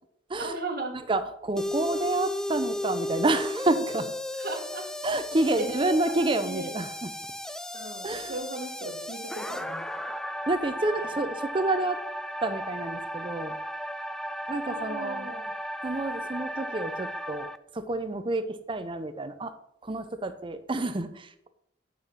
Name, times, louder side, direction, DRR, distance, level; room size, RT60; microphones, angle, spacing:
voice 1, 0.4-0.9 4.4-4.9 5.6-5.9 6.2-6.7 7.7-9.9 11.0-11.1 14.7-15.4, right 2 dB, 55° right, 1 dB, 1.6 m, -36 dB
voice 2, 1.1-4.1 5.0-7.1 8.0-8.4 10.5-12.0 12.4-13.6 14.5-15.3 15.8-19.5 19.8-21.5, right 2 dB, 30° right, 10 dB, 0.6 m, -29 dB
sound 1, 1.6-17.6, left 1 dB, 5° left, 0.3 m, -35 dB
7.4 x 6.3 x 5.5 m, 0.73 s
head